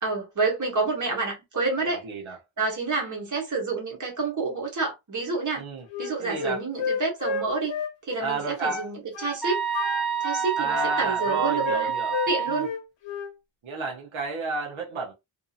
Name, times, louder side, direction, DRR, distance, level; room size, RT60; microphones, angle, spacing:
voice 1, 0.0-2.0 2.6-5.7 6.0-7.7 8.0-9.6 10.2-11.9 12.3-12.8, right 3 dB, 40° right, 1.2 m, -28 dB
voice 2, 1.8-2.4 5.6-5.9 6.2-6.6 8.2-8.9 10.6-12.2 12.5-12.7 13.6-15.1, right 4 dB, 80° right, 0.9 m, -31 dB
Wind instrument woodwind instrument, 5.9-8.9 9.1-9.4 9.7-12.3 12.6-13.3, left 5 dB, 65° left, 0.8 m, -31 dB
sound 1, 9.4-12.7, right 7 dB, ahead, 0.4 m, -28 dB
2.7 x 2.6 x 2.4 m
wide cardioid pair, 170°, 47 cm